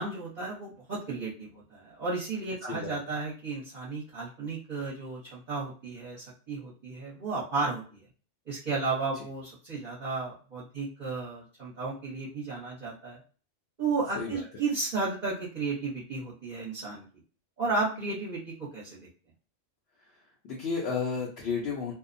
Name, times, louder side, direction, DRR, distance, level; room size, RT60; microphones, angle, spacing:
voice 1, 0.0-8.1 8.5-13.2 13.8-17.0 17.6-19.1, right 3 dB, 40° right, -8 dB, 0.9 m, -33 dB
voice 2, 20.0-21.9, left 5 dB, 65° left, -3 dB, 0.8 m, -33 dB
2.7 x 2.0 x 2.5 m, 0.39 s
omnidirectional pair, 1.3 m